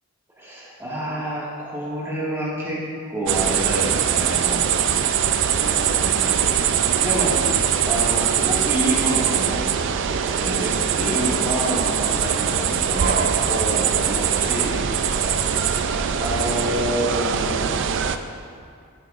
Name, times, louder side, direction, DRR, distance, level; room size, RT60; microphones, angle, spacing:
voice 1, 0.4-2.8 3.1-4.6 5.5-7.4 7.8-9.6 10.4-14.8 16.2-17.6, equal, 10° right, -7 dB, 1.8 m, -28 dB
sound 1, 3.3-18.2, right 8 dB, 55° right, 0.4 m, -22 dB
13.0 x 7.6 x 2.5 m, 2.2 s
head